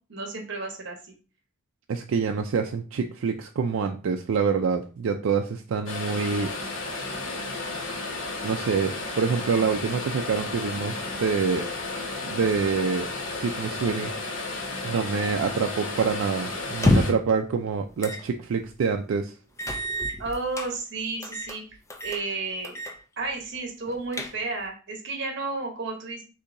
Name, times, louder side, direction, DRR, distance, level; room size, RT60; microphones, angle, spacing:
voice 1, 0.1-1.1 20.2-21.6 22.0-22.8 23.2-26.2, right 3 dB, 60° right, 2 dB, 1.0 m, -32 dB
voice 2, 1.9-6.5 8.4-11.7 12.2-14.1 14.8-19.3, right 5 dB, 80° right, 4 dB, 0.4 m, -26 dB
sound 1, 5.9-17.1, left 2 dB, 85° left, 1.2 m, -33 dB
sound 2, 16.7-17.3 18.0-18.2 18.6-18.7 19.6-20.7 21.2-21.6 21.9-22.2 22.6-23.0 23.3-23.4 23.9-24.6, left 1 dB, 15° left, 0.5 m, -26 dB
6.6 x 2.7 x 2.6 m, 0.36 s
head